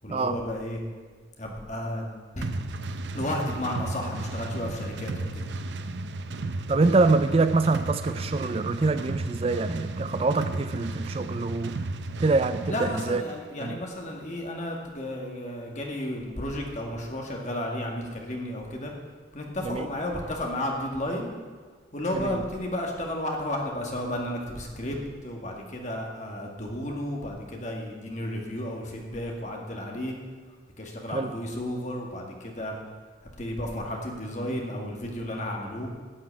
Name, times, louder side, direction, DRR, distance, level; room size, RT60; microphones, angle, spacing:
voice 1, 0.0-0.8 1.4-2.1 2.4-2.5 3.1-5.4 12.7-18.9 19.3-21.3 21.9-30.1 30.8-32.8 33.4-35.9, left 1 dB, 40° left, 0 dB, 1.9 m, -33 dB
sound 1, 2.4-13.2, right 2 dB, 75° right, 0.6 m, -34 dB
voice 2, 6.7-11.8 12.2-13.2 13.6-13.8 19.6-19.9 22.1-22.4 31.1-31.3, right 3 dB, 30° right, 11 dB, 0.4 m, -25 dB
12.0 x 6.2 x 8.8 m, 1.5 s
head